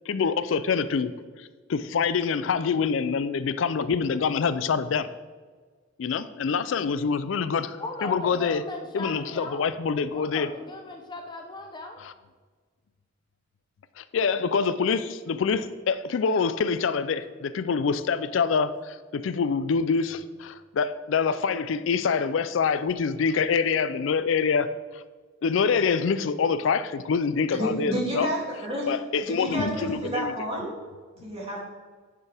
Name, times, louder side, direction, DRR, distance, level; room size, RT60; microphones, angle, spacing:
voice 1, 0.1-1.1 1.4-5.1 6.0-8.6 8.9-10.5 12.0-12.1 14.0-25.0 25.4-28.3 28.9-30.3, left 5 dB, 70° left, 13 dB, 0.4 m, -26 dB
voice 2, 7.8-9.7 10.1-12.0, left 3 dB, 20° left, 3 dB, 0.6 m, -37 dB
voice 3, 27.5-28.9 29.2-30.7 31.2-31.6, right 1 dB, 30° right, -4 dB, 2.7 m, -30 dB
10.5 x 6.7 x 3.4 m, 1.5 s
head